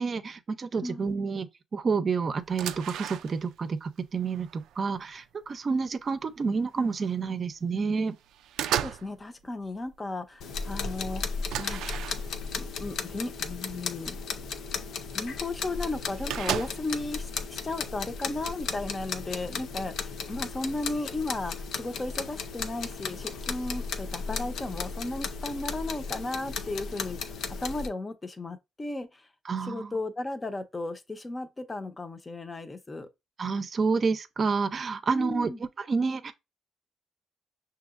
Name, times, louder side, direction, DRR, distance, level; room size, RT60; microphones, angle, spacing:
voice 1, 0.0-1.5 1.7-8.2 29.5-29.9 33.4-35.5 35.8-36.3, right 5 dB, 45° right, 0.6 m, -29 dB
voice 2, 0.8-1.1 8.6-11.2 11.6-12.1 12.6-14.2 15.1-29.3 29.6-33.1 35.1-35.6, left 2 dB, 25° left, 0.7 m, -35 dB
sound 1, 2.4-3.6 4.0-5.2 5.8-5.9 6.3-7.2 7.6-8.0 8.3-9.2 9.5-9.9 10.4-10.5 10.8-10.9 11.5-12.6 13.4-13.5 14.0-14.1 15.2-15.3 15.4-15.5 15.7-17.0, right 11 dB, 85° right, 0.3 m, -35 dB
sound 2, 10.4-27.9, left 5 dB, 75° left, 0.5 m, -35 dB
6.0 x 2.9 x 2.5 m
cardioid pair, 90°, 0 cm